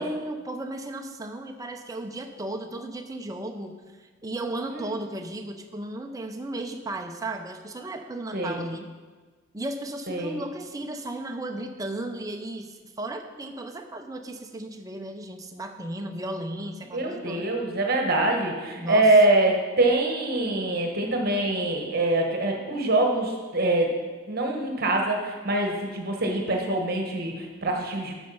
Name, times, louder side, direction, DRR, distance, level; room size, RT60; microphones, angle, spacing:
voice 1, 0.0-8.9 9.5-17.5 18.7-19.1, right 1 dB, 15° right, 5 dB, 0.6 m, -35 dB
voice 2, 10.1-10.4 16.9-24.0 24.3-28.1, right 2 dB, 50° right, 2 dB, 1.2 m, -24 dB
9.0 x 6.3 x 5.4 m, 1.4 s
head